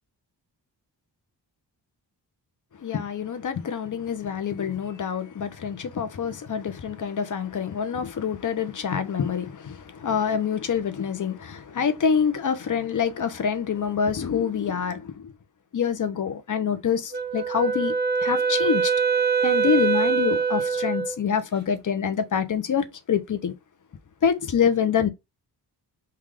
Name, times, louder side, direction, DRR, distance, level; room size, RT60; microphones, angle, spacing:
voice 1, 2.8-15.3 15.7-17.9 18.2-18.9 19.4-23.5 24.2-25.1, left 7 dB, 45° left, 0.7 m, -26 dB
Wind instrument woodwind instrument, 17.1-21.2, right 6 dB, 25° right, 0.7 m, -23 dB
3.3 x 2.4 x 3.5 m
wide cardioid pair, 95°, 42 cm